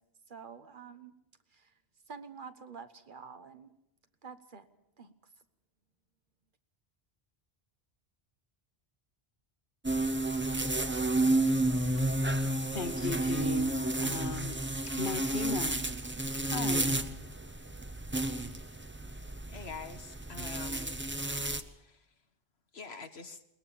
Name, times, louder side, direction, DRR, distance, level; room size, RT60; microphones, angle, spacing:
voice 1, 0.3-1.1 1.5-1.7 2.1-3.7 4.2-4.7 5.0-5.1, right 5 dB, 55° right, 1.3 m, -48 dB
sound 1, 9.8-21.6, right 2 dB, 10° right, 0.8 m, -31 dB
voice 2, 12.7-15.8 16.4-17.0, left 4 dB, 55° left, 1.1 m, -37 dB
voice 3, 19.5-21.0 21.7-22.0 22.7-23.4, left 4 dB, 80° left, 1.6 m, -45 dB
22.0 x 19.5 x 7.1 m
omnidirectional pair, 1.0 m